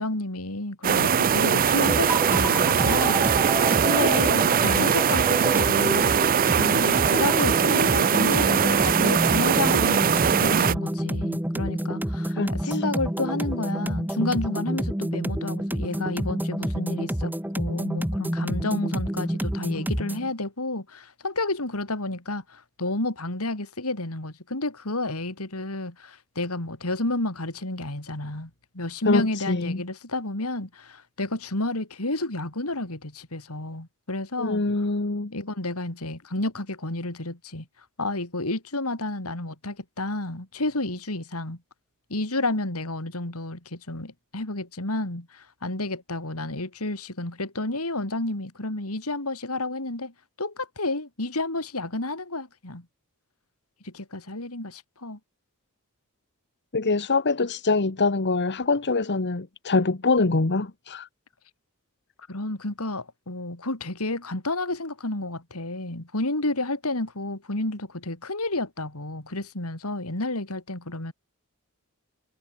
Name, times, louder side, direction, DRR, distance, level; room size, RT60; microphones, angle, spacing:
voice 1, 0.0-3.3 3.8-34.6 35.3-37.7 38.0-41.6 42.1-50.1 50.4-52.9 53.8-55.2 62.3-71.1, left 2 dB, 75° left, 3.9 m, -31 dB
sound 1, 0.8-10.7, right 7 dB, 40° right, 0.5 m, -21 dB
sound 2, 1.9-20.3, equal, 10° right, 1.5 m, -29 dB
voice 2, 4.6-4.9 12.4-12.8 29.0-29.8 34.4-35.3 56.7-61.1, left 3 dB, 50° left, 1.3 m, -24 dB
head